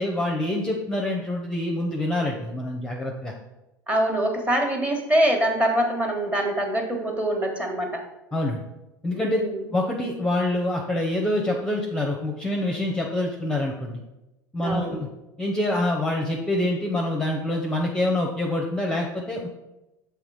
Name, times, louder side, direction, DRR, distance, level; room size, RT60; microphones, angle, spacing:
voice 1, 0.0-3.3 8.3-8.6 9.0-9.4 9.7-14.0 14.5-15.1 15.4-19.5, left 1 dB, 5° left, 0 dB, 0.8 m, -26 dB
voice 2, 3.9-8.0 9.1-9.7 14.6-15.0, right 1 dB, 15° right, 2 dB, 1.4 m, -24 dB
6.5 x 3.4 x 4.9 m, 0.96 s
hypercardioid pair, 80°, 11 cm